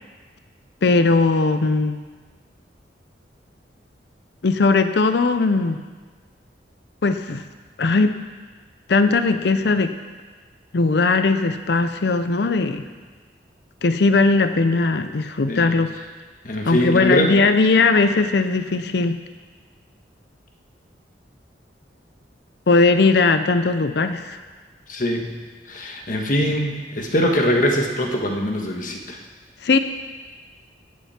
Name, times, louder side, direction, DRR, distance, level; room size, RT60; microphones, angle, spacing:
voice 1, 0.8-2.0 4.4-5.8 7.0-7.4 7.8-8.1 8.9-9.9 10.7-12.9 13.8-15.9 16.6-19.2 22.7-24.4 29.6-29.8, left 3 dB, 65° left, 10 dB, 0.5 m, -18 dB
voice 2, 16.4-17.3 24.9-25.3 25.7-29.2, equal, 45° left, 2 dB, 1.5 m, -22 dB
16.5 x 9.1 x 4.4 m, 1.4 s
head